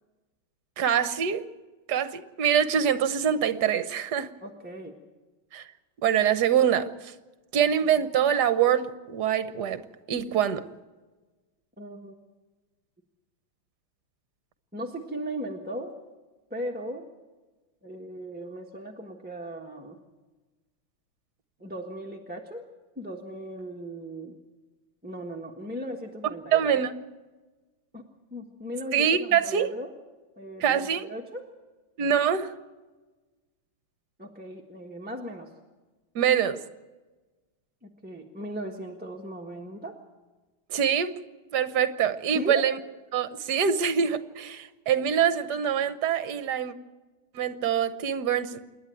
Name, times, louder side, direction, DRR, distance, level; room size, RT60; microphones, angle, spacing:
voice 1, 0.8-1.5 1.9-4.3 5.5-5.6 6.0-7.1 7.5-9.8 10.1-10.6 26.5-26.9 28.9-29.7 30.6-31.1 32.0-32.5 36.1-36.6 40.7-41.1 41.5-42.8 43.1-46.7 47.3-48.6, right 8 dB, 60° right, 1.4 m, -24 dB
voice 2, 4.4-5.0 11.8-12.1 14.7-15.9 16.5-17.1 17.8-20.0 21.6-22.6 23.0-24.4 25.0-26.7 27.9-28.0 28.3-29.9 30.4-31.5 34.2-35.5 37.8-40.0 42.3-42.7, equal, 5° right, 1.2 m, -37 dB
27.5 x 11.0 x 9.1 m
omnidirectional pair, 2.2 m